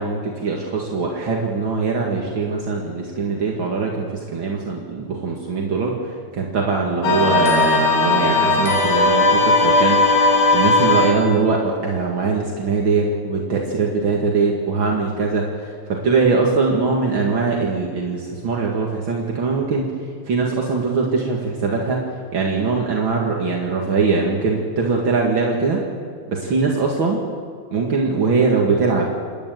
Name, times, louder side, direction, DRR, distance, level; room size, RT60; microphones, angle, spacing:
voice 1, 0.0-10.0 10.5-19.9 20.2-22.0 22.3-25.8 26.3-27.2 27.7-29.0, right 4 dB, 50° right, -1 dB, 1.6 m, -21 dB
sound 1, 7.0-11.3, left 3 dB, 65° left, 4.5 m, -17 dB
27.5 x 12.0 x 9.2 m, 2.1 s
omnidirectional pair, 5.1 m